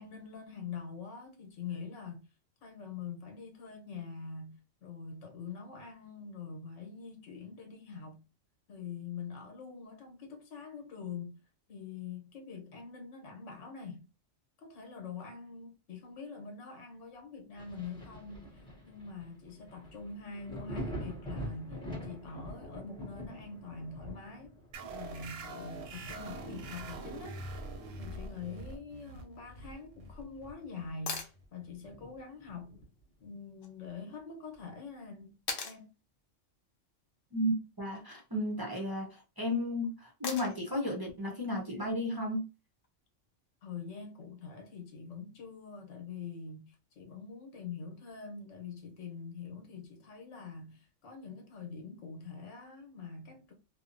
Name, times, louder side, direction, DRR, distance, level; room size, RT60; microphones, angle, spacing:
voice 1, 0.0-2.2 2.6-8.2 8.7-11.4 11.7-14.1 14.6-24.6 24.9-27.4 28.0-31.2 31.5-32.7 33.2-35.4 35.6-35.9 43.6-53.5, left 5 dB, 75° left, 1.1 m, -44 dB
Thunder, 17.6-28.9 29.3-30.8 31.2-31.3 31.8-33.1 34.5-34.6, equal, 5° left, 0.6 m, -46 dB
sound 1, 24.7-31.9, right 2 dB, 85° right, 0.9 m, -44 dB
sound 2, 31.1-31.4 33.6-33.7 35.5-35.8 37.8-38.2 40.2-40.7 42.8-42.9, left 4 dB, 60° left, 0.7 m, -38 dB
voice 2, 37.3-42.5, left 1 dB, 35° right, 0.3 m, -33 dB
2.8 x 2.0 x 2.5 m
omnidirectional pair, 1.3 m